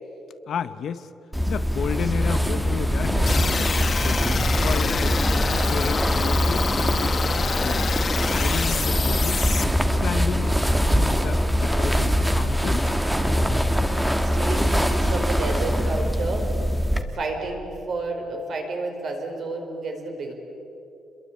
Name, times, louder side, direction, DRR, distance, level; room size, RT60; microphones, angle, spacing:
voice 1, 0.5-1.1 1.5-5.2 5.5-7.9 8.3-9.5 10.0-10.5 10.9-12.9, left 7 dB, 50° left, 12 dB, 0.8 m, -32 dB
sound 1, 1.3-17.0, equal, ahead, 1.3 m, -23 dB
sound 2, 3.3-9.6, left 5 dB, 30° left, 1.1 m, -27 dB
voice 2, 14.2-20.3, right 3 dB, 45° right, 3 dB, 4.7 m, -31 dB
29.0 x 22.0 x 8.6 m, 3.0 s
cardioid pair, 165°, 0 cm